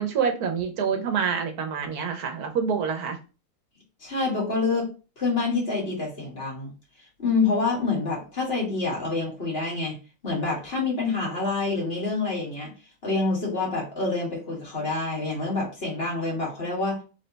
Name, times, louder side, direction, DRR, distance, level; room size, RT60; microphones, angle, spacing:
voice 1, 0.0-3.2, right 6 dB, 80° right, 5 dB, 1.4 m, -27 dB
voice 2, 4.0-4.9 5.2-6.7 7.2-10.0 10.2-12.7 13.0-17.0, left 3 dB, 40° left, -3 dB, 1.9 m, -27 dB
3.6 x 3.3 x 3.9 m, 0.34 s
omnidirectional pair, 1.6 m